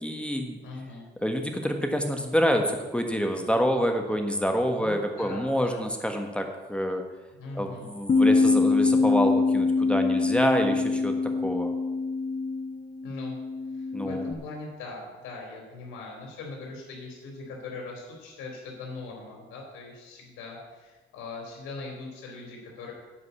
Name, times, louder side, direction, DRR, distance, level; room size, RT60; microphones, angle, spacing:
voice 1, 0.0-0.6 1.2-7.0 7.5-11.1 11.4-11.7 13.9-14.2, equal, 5° left, 4 dB, 1.4 m, -27 dB
voice 2, 0.6-1.0 4.7-5.9 7.4-7.9 13.0-13.4 13.7-22.9, left 3 dB, 85° left, -1 dB, 3.3 m, -40 dB
Bass guitar, 8.1-14.3, left 3 dB, 30° left, 0.8 m, -24 dB
11.0 x 5.4 x 8.2 m, 1.2 s
cardioid pair, 90°, 20 cm